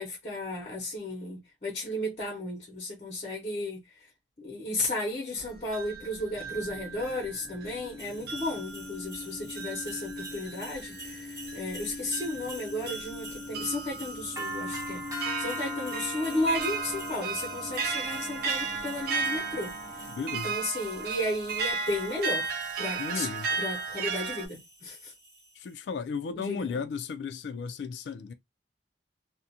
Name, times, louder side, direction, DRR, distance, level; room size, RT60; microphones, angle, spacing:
voice 1, 0.0-3.8 4.4-20.1 20.4-23.3 23.6-25.1 26.3-26.7, left 1 dB, 35° left, 0.8 m, -34 dB
sound 1, 5.4-7.9 8.3-24.5, right 4 dB, 55° right, 0.4 m, -35 dB
sound 2, 6.3-20.2, left 3 dB, 5° left, 0.7 m, -43 dB
sound 3, 8.0-25.7, equal, 20° right, 0.9 m, -44 dB
voice 2, 20.1-20.5 23.0-23.5 25.5-28.3, left 5 dB, 70° left, 0.3 m, -35 dB
2.4 x 2.1 x 2.7 m
head